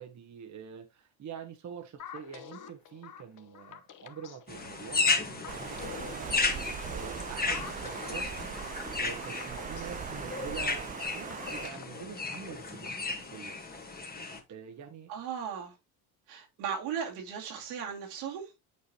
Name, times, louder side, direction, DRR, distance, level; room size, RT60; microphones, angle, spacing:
voice 1, 0.0-6.6 6.9-8.3 9.0-13.5 14.5-15.1, right 7 dB, 40° right, 1.3 m, -45 dB
sound 1, 2.0-13.0, left 8 dB, 45° left, 1.1 m, -48 dB
sound 2, 4.5-14.4, left 4 dB, 20° left, 1.8 m, -34 dB
Water, 5.5-11.7, right 8 dB, 20° right, 0.3 m, -40 dB
voice 2, 15.1-15.7 16.3-18.5, right 7 dB, 80° right, 2.6 m, -37 dB
8.5 x 4.7 x 2.9 m
supercardioid pair, 75°, 44 cm